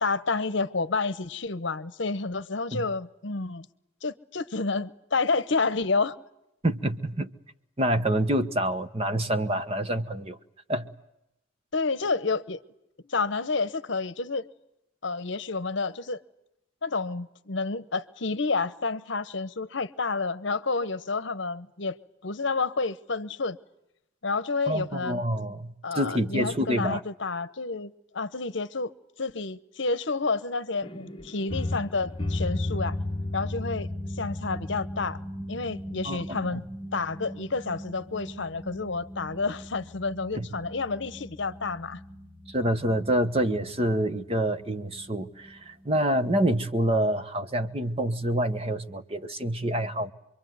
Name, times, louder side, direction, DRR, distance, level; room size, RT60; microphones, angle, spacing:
voice 1, 0.0-3.7 4.0-6.2 11.7-12.6 13.1-14.5 15.0-16.2 16.8-22.0 22.2-23.6 24.2-25.2 25.8-28.9 29.2-33.0 33.3-33.9 34.2-35.2 35.5-36.7 36.9-42.0, left 4 dB, 60° left, 0.9 m, -29 dB
voice 2, 6.6-7.3 7.8-10.4 10.7-10.9 24.7-27.0 36.0-36.2 40.3-40.5 42.5-50.1, right 1 dB, 30° right, 1.1 m, -27 dB
sound 1, 30.8-47.0, left 1 dB, 25° left, 1.1 m, -37 dB
26.0 x 23.5 x 9.4 m
head